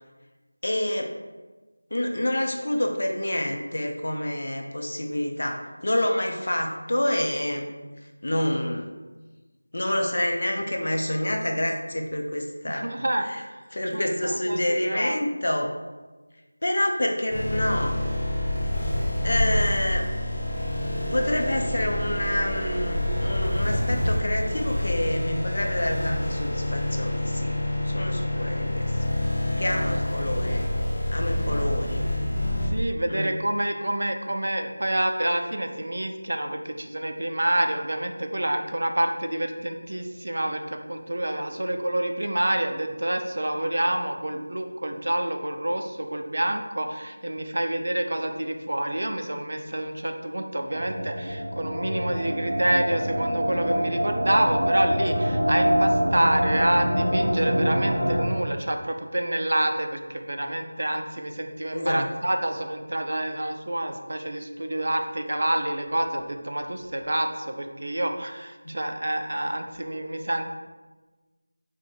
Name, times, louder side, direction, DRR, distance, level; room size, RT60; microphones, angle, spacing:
voice 1, 0.6-1.1 1.9-7.7 8.2-8.9 9.7-12.8 13.2-13.4 13.7-15.7 16.6-18.0 19.2-20.1 21.0-28.9 29.6-30.6 31.1-32.1 33.1-33.3 61.7-62.0, left 1 dB, 50° left, 2 dB, 0.5 m, -27 dB
voice 2, 12.7-13.6 13.9-15.2 28.3-28.5 32.7-70.5, right 1 dB, 60° right, 4 dB, 0.4 m, -28 dB
sound 1, 17.3-32.7, left 1 dB, 20° left, 0.8 m, -27 dB
sound 2, 50.7-58.3, equal, 45° right, 1.2 m, -25 dB
4.4 x 2.1 x 4.2 m, 1.2 s
figure-of-eight pair, 175°, 0 cm